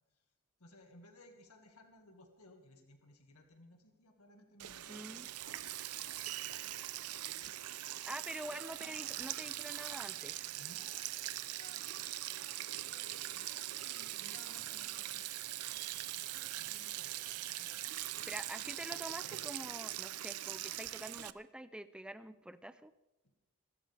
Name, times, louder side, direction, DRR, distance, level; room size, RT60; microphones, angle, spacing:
voice 1, 0.6-5.5 5.9-6.0 6.4-6.8 7.2-8.1 10.6-11.1 11.4-15.6 16.2-17.2 17.5-18.2 23.2-23.3, left 1 dB, 85° left, 4 dB, 2.1 m, -61 dB
Sink (filling or washing), 4.6-21.3, right 14 dB, 85° right, 0.6 m, -42 dB
voice 2, 4.9-5.3 8.1-10.6 18.3-22.9, right 1 dB, 5° right, 12 dB, 0.5 m, -46 dB
26.0 x 13.0 x 3.5 m, 1.1 s
head